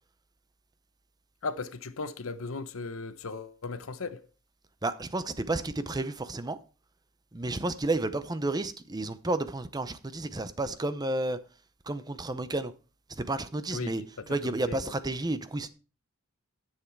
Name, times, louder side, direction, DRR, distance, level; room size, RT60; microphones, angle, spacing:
voice 1, 1.4-4.2 13.7-14.8, left 3 dB, 70° left, 0.8 m, -37 dB
voice 2, 4.8-6.6 7.3-11.4 11.9-12.7 13.1-15.7, right 2 dB, 20° right, 0.6 m, -31 dB
10.0 x 7.5 x 4.6 m
head